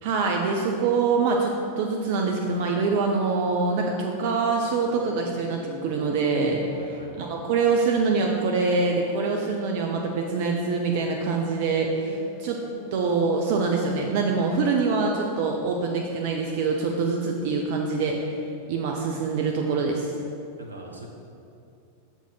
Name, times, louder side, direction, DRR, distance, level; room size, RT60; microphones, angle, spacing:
voice 1, 0.0-12.6 12.9-18.4 18.7-20.1, right 4 dB, 50° right, 1 dB, 0.6 m, -25 dB
sound 1, 4.7-6.1 6.6-7.1 7.9-9.6 10.0-11.6 11.9-14.0 14.3-15.8, left 3 dB, 85° left, 1.4 m, -43 dB
voice 2, 6.6-7.3 20.6-21.1, right 2 dB, 80° right, 0 dB, 1.0 m, -43 dB
7.1 x 4.5 x 5.6 m, 2.5 s
figure-of-eight pair, 90°, 0 cm